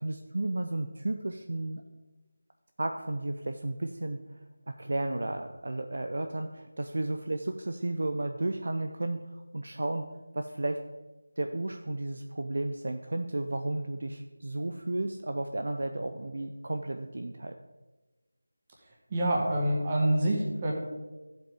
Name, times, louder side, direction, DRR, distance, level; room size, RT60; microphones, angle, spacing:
voice 1, 0.0-1.8 2.8-4.2 4.7-10.0 10.3-10.8 11.4-17.5, right 2 dB, 60° right, 6 dB, 0.6 m, -33 dB
voice 2, 19.1-20.7, right 1 dB, 25° right, -1 dB, 1.9 m, -26 dB
14.0 x 7.6 x 3.6 m, 1.2 s
figure-of-eight pair, 165°, 0 cm